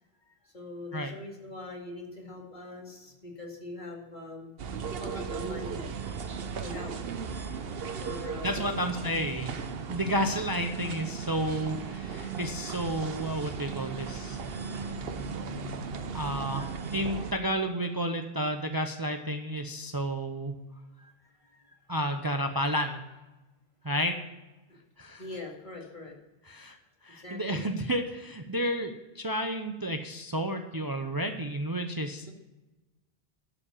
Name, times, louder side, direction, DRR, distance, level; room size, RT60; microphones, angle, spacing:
voice 1, 0.3-4.5 5.0-5.9 6.6-6.9 8.0-9.1 13.8-16.0 21.0-21.1 21.4-21.8 24.7-24.8 25.2-26.2 27.2-27.7, left 2 dB, 50° left, -1 dB, 2.3 m, -43 dB
sound 1, 4.6-17.3, right 6 dB, 70° right, 1.0 m, -36 dB
voice 2, 8.4-9.6 9.9-14.4 16.1-20.6 21.9-23.0 23.8-24.2 25.0-25.2 26.5-26.8 27.0-32.3, equal, 25° right, 5 dB, 0.6 m, -31 dB
11.5 x 5.0 x 8.5 m, 1.1 s
omnidirectional pair, 1.0 m